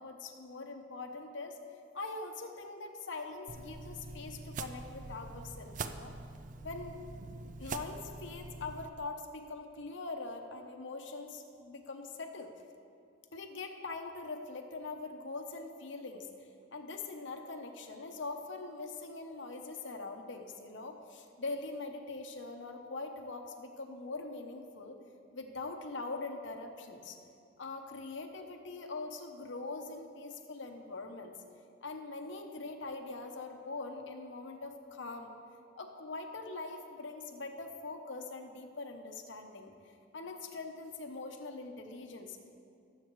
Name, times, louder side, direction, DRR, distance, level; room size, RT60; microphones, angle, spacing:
voice 1, 0.0-1.6 1.9-6.1 6.6-7.0 7.6-12.5 13.3-25.0 25.3-27.2 27.6-31.3 31.8-35.3 35.8-39.7 40.1-42.4, left 3 dB, 65° left, 4 dB, 0.9 m, -43 dB
sound 1, 3.5-8.9, right 3 dB, 40° right, 0.4 m, -44 dB
19.5 x 7.7 x 3.2 m, 2.5 s
head